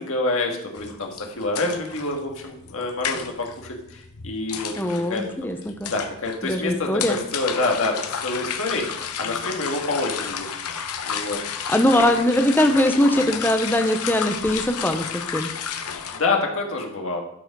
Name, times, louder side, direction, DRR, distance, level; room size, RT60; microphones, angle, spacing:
voice 1, 0.0-5.2 5.9-10.5 11.0-11.4 11.9-12.0 16.1-17.2, left 2 dB, 65° left, 1 dB, 1.7 m, -27 dB
sound 1, 0.8-16.2, left 7 dB, 85° left, 0.8 m, -32 dB
voice 2, 4.8-5.9 6.4-7.2 11.7-15.5, left 1 dB, 10° left, 5 dB, 0.6 m, -21 dB
12.0 x 5.0 x 5.3 m, 0.80 s
head